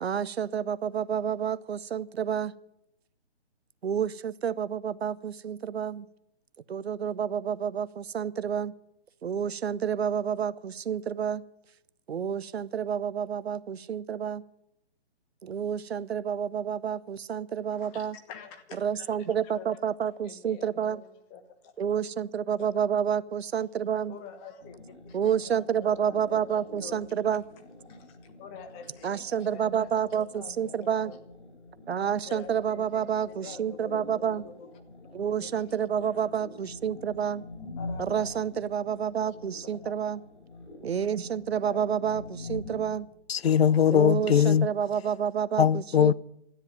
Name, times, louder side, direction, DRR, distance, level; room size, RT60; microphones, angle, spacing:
voice 1, 0.0-2.5 3.8-6.1 6.7-8.7 9.2-11.4 12.1-14.4 15.4-18.2 18.8-21.0 21.8-24.2 25.1-27.4 29.0-31.1 31.9-34.4 35.1-37.4 38.0-40.2 40.8-43.1 43.9-46.1, right 8 dB, 65° right, 0.8 m, -29 dB
voice 2, 17.7-19.1 19.4-19.8 20.2-21.7 22.6-22.7 24.1-25.5 25.8-27.1 27.9-31.2 32.3-34.7 35.4-36.2 37.8-38.4 39.3-39.4 39.8-39.9 41.6-41.8, left 6 dB, 15° left, 1.2 m, -47 dB
sound 1, 24.6-43.0, left 2 dB, 80° left, 5.0 m, -45 dB
voice 3, 43.3-44.7 45.6-46.1, left 8 dB, 65° left, 0.6 m, -21 dB
13.5 x 9.7 x 9.4 m
figure-of-eight pair, 140°, 33 cm